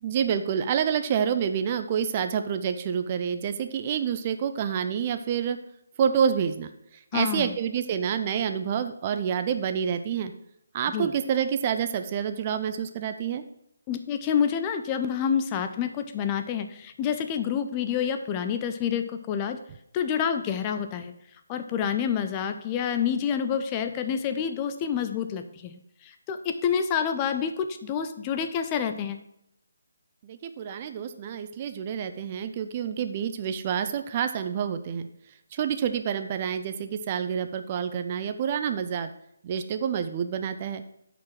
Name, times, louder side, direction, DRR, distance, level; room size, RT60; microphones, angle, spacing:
voice 1, 0.0-5.6 6.0-6.7 7.1-10.3 10.7-13.4 30.2-35.1 35.5-39.1 39.4-40.8, right 8 dB, 30° right, 9 dB, 0.5 m, -28 dB
voice 2, 7.1-7.5 10.9-11.1 13.9-19.6 19.9-21.1 21.5-29.2, left 8 dB, 20° left, 8 dB, 0.5 m, -28 dB
8.2 x 5.1 x 6.0 m, 0.77 s
figure-of-eight pair, 145°, 0 cm